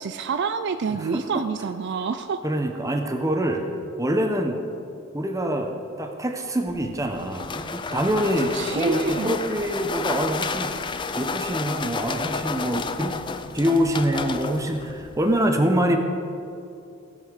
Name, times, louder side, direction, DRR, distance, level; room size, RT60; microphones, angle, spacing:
voice 1, 0.0-2.4 8.5-9.3, right 5 dB, 55° right, 10 dB, 0.3 m, -28 dB
voice 2, 1.0-1.4 2.4-3.7 4.0-4.6 5.1-10.7 11.2-13.2 13.5-16.0, equal, 15° right, 4 dB, 0.8 m, -25 dB
sound 1, 6.7-15.4, left 4 dB, 20° left, 0.3 m, -31 dB
15.5 x 5.6 x 6.5 m, 2.6 s
head